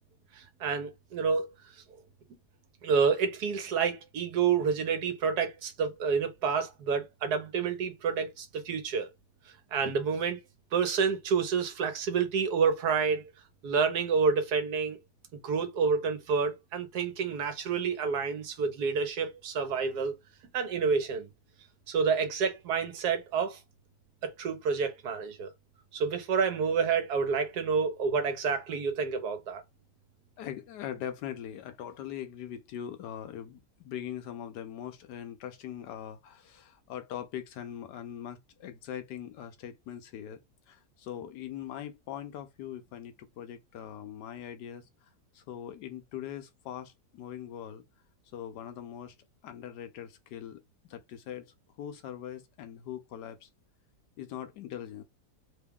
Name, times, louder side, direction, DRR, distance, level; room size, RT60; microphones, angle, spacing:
voice 1, 0.4-1.5 2.8-9.1 9.7-10.4 10.7-13.3 13.6-15.0 15.4-20.2 20.5-21.3 21.9-23.6 24.2-25.5 25.9-29.6, right 5 dB, 75° right, 1.4 m, -29 dB
voice 2, 30.4-40.4 40.7-44.9 45.3-47.8 48.3-49.1 49.4-50.6 50.9-53.5 54.2-55.0, left 10 dB, 90° left, 1.3 m, -41 dB
3.4 x 2.3 x 3.5 m
omnidirectional pair, 1.8 m